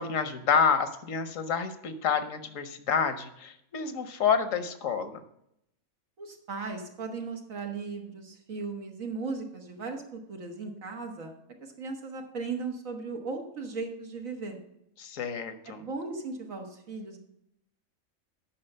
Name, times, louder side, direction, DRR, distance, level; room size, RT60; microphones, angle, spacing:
voice 1, 0.0-5.2 15.0-15.8, left 6 dB, 75° left, 10 dB, 1.3 m, -28 dB
voice 2, 6.2-11.3 11.6-14.6 15.7-17.2, right 4 dB, 85° right, 3 dB, 1.9 m, -37 dB
8.7 x 5.9 x 6.7 m, 0.77 s
omnidirectional pair, 1.4 m